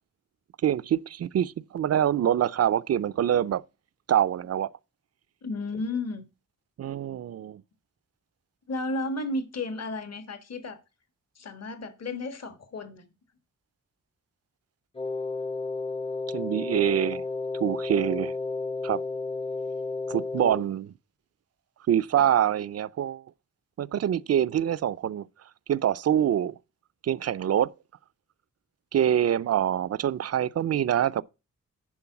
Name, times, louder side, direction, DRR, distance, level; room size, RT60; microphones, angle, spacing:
voice 1, 0.6-3.6 4.1-4.7 6.8-7.6 16.3-17.2 17.6-18.3 18.8-19.0 20.1-20.9 21.9-23.2 23.8-25.2 25.7-26.6 27.0-27.7 28.9-31.2, right 10 dB, 55° right, 0.4 m, -25 dB
voice 2, 5.4-6.2 8.7-10.8 11.4-13.0 20.4-20.5 22.2-22.3, left 2 dB, 55° left, 1.4 m, -33 dB
Wind instrument woodwind instrument, 14.9-20.7, left 3 dB, 20° left, 0.6 m, -32 dB
11.0 x 4.6 x 5.8 m
wide cardioid pair, 155°, 30 cm